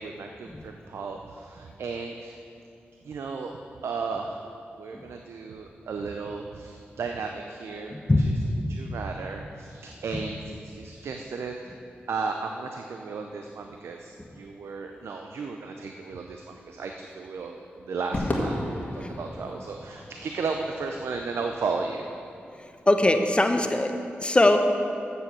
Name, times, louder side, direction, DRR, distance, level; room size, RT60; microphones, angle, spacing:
voice 1, 0.0-2.4 3.0-3.5 3.8-4.5 4.8-8.3 8.7-11.8 12.1-22.1, right 4 dB, 80° right, 3 dB, 0.5 m, -34 dB
voice 2, 7.9-8.3 19.0-19.1 22.9-23.9 24.2-24.6, left 2 dB, 25° left, 6 dB, 0.9 m, -21 dB
Crowd / Fireworks, 18.1-22.6, left 1 dB, 40° left, 1.8 m, -34 dB
7.7 x 6.9 x 7.1 m, 2.6 s
cardioid pair, 50°, 4 cm